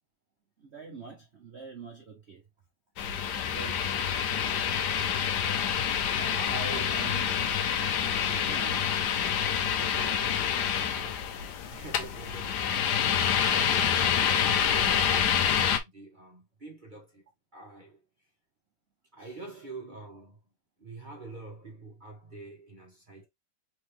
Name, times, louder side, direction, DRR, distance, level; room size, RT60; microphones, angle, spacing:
voice 1, 0.6-2.4 3.5-3.9 6.2-7.3 8.1-8.9 19.2-19.3, right 5 dB, 70° right, 0.6 m, -43 dB
sound 1, 3.0-15.8, left 8 dB, 70° left, 1.0 m, -27 dB
voice 2, 3.9-4.9 5.4-5.8 6.3-7.0 9.8-11.3 11.7-17.2 17.5-18.0 19.1-20.4 20.8-23.3, right 2 dB, 30° right, 1.1 m, -46 dB
3.8 x 3.7 x 3.1 m
omnidirectional pair, 2.4 m